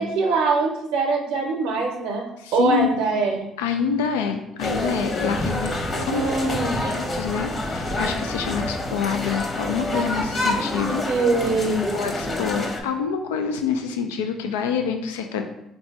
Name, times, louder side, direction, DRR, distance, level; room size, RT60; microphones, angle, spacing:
voice 1, 0.0-2.2 2.5-3.5 5.9-6.7 11.1-12.1, right 3 dB, 70° right, -1 dB, 0.6 m, -23 dB
voice 2, 2.4-2.9 3.6-5.7 6.0-11.1 11.9-15.4, left 6 dB, 90° left, 5 dB, 0.3 m, -27 dB
sound 1, 4.6-12.8, left 1 dB, 35° left, 1.1 m, -27 dB
3.9 x 2.6 x 4.5 m, 0.85 s
hypercardioid pair, 60°, 0 cm